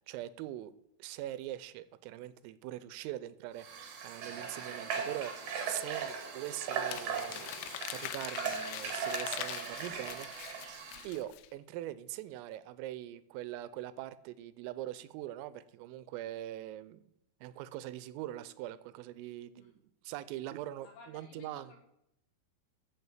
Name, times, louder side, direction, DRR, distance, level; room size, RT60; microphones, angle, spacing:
voice 1, 0.1-0.7 1.0-10.5 11.0-17.0 17.4-19.7 20.0-21.8, right 14 dB, 90° right, 15 dB, 3.3 m, -42 dB
Water / Water tap faucet, 3.6-11.1, right 6 dB, 65° right, 1.9 m, -39 dB
Crumpling crinkling, 6.9-11.5, left 13 dB, 90° left, 3.4 m, -43 dB
voice 2, 20.8-21.8, left 4 dB, 70° left, 3 dB, 2.7 m, -55 dB
14.0 x 5.9 x 7.1 m, 0.80 s
omnidirectional pair, 5.9 m